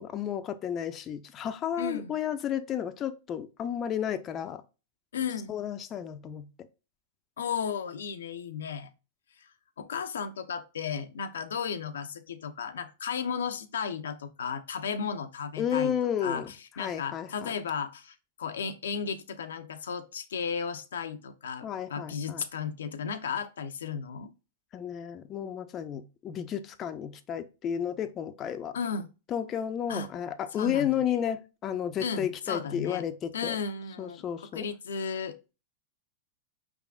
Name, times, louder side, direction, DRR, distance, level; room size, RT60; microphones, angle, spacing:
voice 1, 0.0-4.6 5.5-6.4 15.6-16.5 16.8-17.5 21.6-22.4 24.7-28.8 29.3-33.6 34.0-34.7, left 9 dB, 30° left, 0.4 m, -32 dB
voice 2, 1.8-2.1 5.1-5.6 7.4-8.9 9.4-9.5 9.8-15.9 16.2-24.3 28.7-29.1 29.9-30.1 30.5-30.9 32.0-33.0 33.3-34.2 34.5-35.4, left 6 dB, 85° left, 0.5 m, -34 dB
4.8 x 3.5 x 2.3 m
hypercardioid pair, 125°, 0 cm